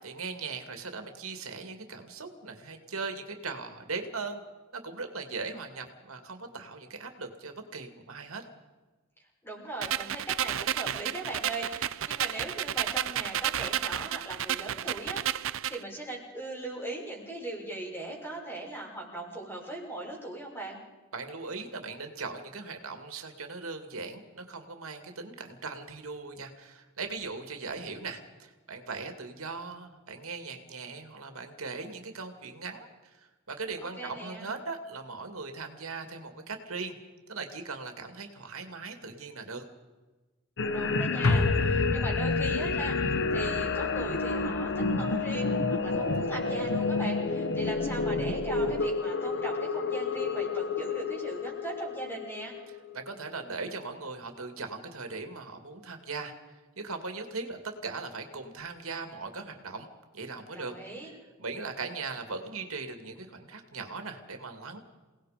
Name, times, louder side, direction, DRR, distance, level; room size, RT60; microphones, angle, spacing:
voice 1, 0.0-4.4 4.7-8.4 21.1-36.9 37.3-39.6 52.9-56.3 56.8-59.9 60.1-60.7 61.4-64.8, right 4 dB, 85° right, 6 dB, 2.4 m, -39 dB
voice 2, 9.4-20.8 34.0-34.5 40.7-52.5 60.5-61.1, right 2 dB, 10° left, -1 dB, 6.5 m, -39 dB
sound 1, 9.8-15.8, right 10 dB, 70° right, 0.6 m, -32 dB
sound 2, 40.6-53.3, left 4 dB, 60° left, 1.2 m, -30 dB
sound 3, 41.2-45.7 46.0-46.1, left 2 dB, 90° left, 1.5 m, -31 dB
28.5 x 18.5 x 5.2 m, 1.2 s
head